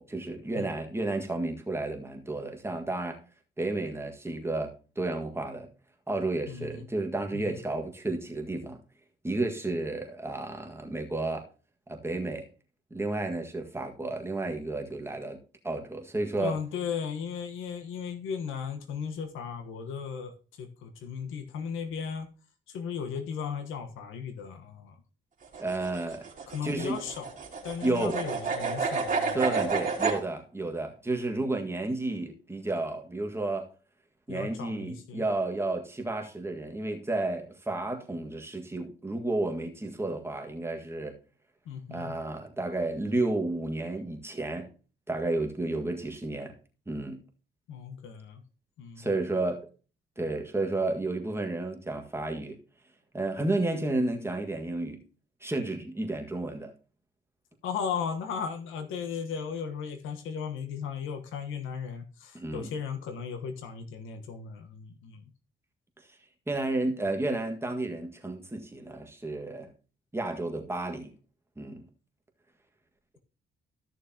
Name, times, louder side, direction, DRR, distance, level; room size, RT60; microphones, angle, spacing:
voice 1, 0.0-3.2 3.6-5.7 6.1-8.8 9.2-11.4 11.9-12.5 12.9-15.4 15.6-16.5 25.6-26.2 26.6-27.0 27.8-28.2 29.3-33.7 34.3-41.1 41.9-44.7 45.1-46.5 46.9-47.2 49.0-49.6 50.2-52.5 53.1-55.0 55.4-56.7 62.3-62.7 66.5-69.7 70.1-71.1 71.6-71.9, right 2 dB, 10° right, 1.7 m, -32 dB
voice 2, 6.5-6.9 7.3-7.6 16.4-22.3 22.7-25.0 26.5-27.3 27.6-29.4 34.3-35.2 41.6-42.2 47.7-48.4 48.8-49.1 57.6-65.2, left 6 dB, 85° left, 1.2 m, -36 dB
sound 1, 25.4-30.2, right 4 dB, 40° right, 2.8 m, -30 dB
14.0 x 6.6 x 2.9 m
cardioid pair, 90°, 20 cm